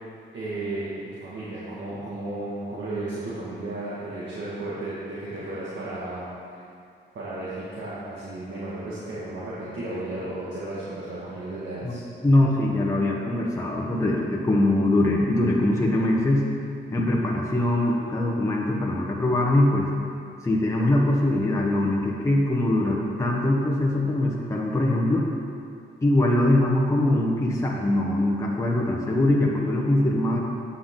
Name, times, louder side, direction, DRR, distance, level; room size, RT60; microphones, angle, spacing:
voice 1, 0.3-6.6 7.1-12.0, right 2 dB, 65° right, -9 dB, 2.0 m, -34 dB
voice 2, 12.2-16.5 16.9-19.9 20.4-25.2 26.0-30.4, left 1 dB, 15° left, -2 dB, 1.0 m, -22 dB
9.4 x 6.9 x 3.8 m, 2.4 s
cardioid pair, 90°, 20 cm